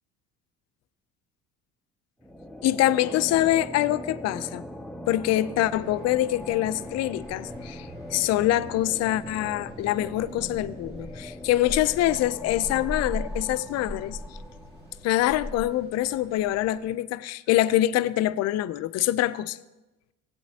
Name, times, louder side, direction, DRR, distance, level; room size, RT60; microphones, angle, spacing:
sound 1, 2.2-15.3, left 1 dB, ahead, 0.4 m, -41 dB
voice 1, 2.6-4.6 5.1-14.2 15.0-19.6, left 14 dB, 60° left, 0.4 m, -25 dB
sound 2, 5.6-16.9, equal, 35° right, 1.9 m, -41 dB
15.0 x 8.3 x 2.8 m
cardioid pair, 105°, 29 cm